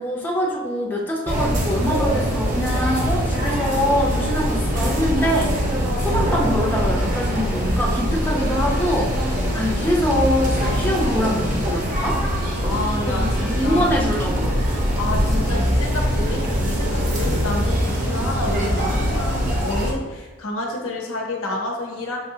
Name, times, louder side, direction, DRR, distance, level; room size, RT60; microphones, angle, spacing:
voice 1, 0.0-12.2 13.1-14.5 15.3-15.5, equal, 10° left, -3 dB, 0.5 m, -24 dB
sound 1, 1.3-19.9, equal, 40° right, 0.8 m, -22 dB
voice 2, 12.6-13.9 15.0-22.2, left 2 dB, 85° left, 0 dB, 0.9 m, -29 dB
6.1 x 2.8 x 2.7 m, 1.3 s
head